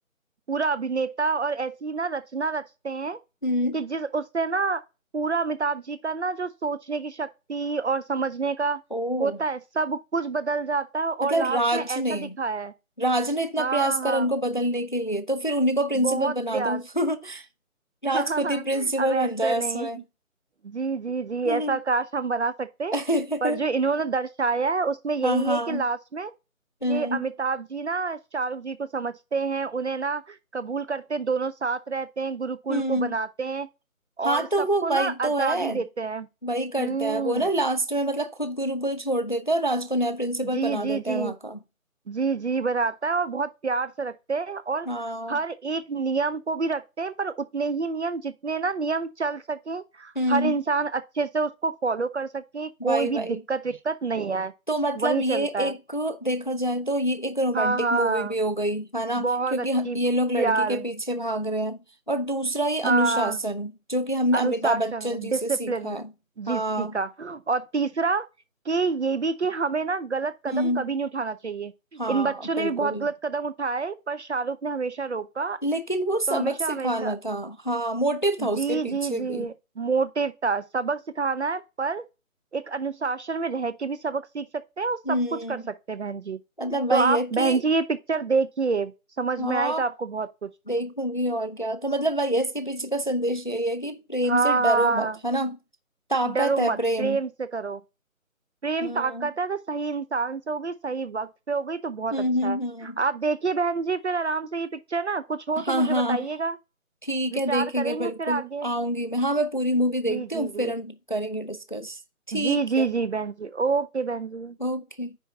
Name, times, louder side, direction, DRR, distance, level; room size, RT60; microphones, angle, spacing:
voice 1, 0.5-3.2 3.7-4.8 5.1-8.8 9.2-12.7 13.6-14.3 16.0-16.8 18.1-19.9 20.6-22.9 23.4-26.3 26.9-33.7 34.2-34.5 34.8-36.3 36.8-37.5 40.5-41.3 42.1-44.9 45.3-54.5 55.0-55.7 57.5-58.3 59.2-60.0 60.4-60.8 62.8-63.4 64.3-66.0 66.4-68.3 68.7-75.6 76.3-77.1 78.4-82.0 82.5-85.2 85.5-85.6 85.9-86.4 86.9-88.9 89.2-90.5 94.2-95.2 96.3-97.8 98.6-102.1 102.4-102.6 102.8-106.6 107.3-108.7 110.1-110.7 112.3-114.6, right 4 dB, 55° right, 0.7 m, -27 dB
voice 2, 3.4-3.8 8.9-9.4 11.2-12.4 13.0-17.5 18.0-20.0 21.4-21.8 22.9-23.6 25.2-25.8 26.8-27.2 32.7-33.1 34.2-35.8 36.4-41.6 44.9-45.4 50.2-50.6 52.8-53.4 54.7-61.8 62.1-66.0 66.5-67.0 70.5-70.9 72.0-73.1 75.6-79.5 85.1-85.6 86.6-87.6 89.4-89.9 90.7-95.6 96.1-97.2 98.8-99.3 102.1-103.0 105.6-106.3 107.0-112.0 112.3-112.9 114.6-115.2, right 1 dB, 35° left, 0.4 m, -26 dB
10.0 x 4.2 x 3.6 m
figure-of-eight pair, 165°, 42 cm